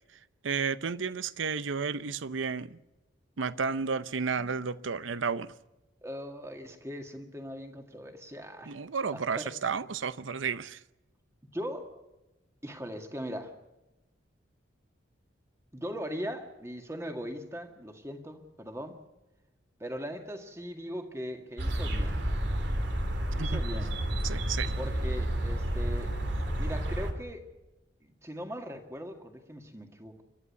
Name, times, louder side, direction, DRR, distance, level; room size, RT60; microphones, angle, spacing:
voice 1, 0.4-2.8 3.4-5.5 8.7-10.8 23.4-23.6 24.2-24.7, right 5 dB, 90° right, 0.7 m, -32 dB
voice 2, 6.0-8.8 9.1-9.5 11.5-12.0 12.6-13.5 15.7-19.0 19.8-22.2 23.4-23.9 24.8-26.1 26.6-27.4 28.0-30.2, equal, 15° right, 1.8 m, -40 dB
sound 1, 21.6-27.1, right 1 dB, 70° right, 2.5 m, -30 dB
28.5 x 12.5 x 8.3 m
head